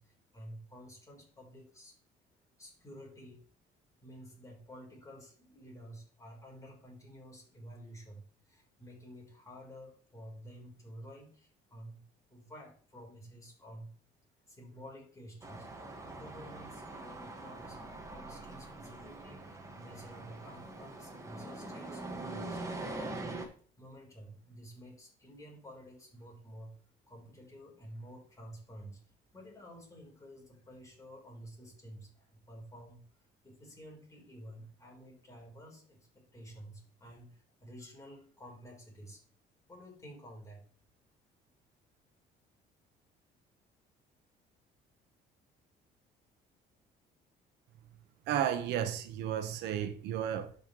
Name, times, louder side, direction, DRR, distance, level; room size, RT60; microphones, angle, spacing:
voice 1, 0.0-2.0 2.6-3.5 4.0-12.0 12.3-13.9 14.5-17.8 18.1-22.6 23.8-26.8 27.1-39.2 39.7-40.7, equal, 20° left, 3.8 m, -51 dB
sound 1, 15.4-23.5, right 2 dB, 20° right, 1.6 m, -43 dB
voice 2, 48.3-50.5, right 10 dB, 85° right, 1.1 m, -33 dB
12.0 x 5.5 x 3.1 m
cardioid pair, 110°, 17 cm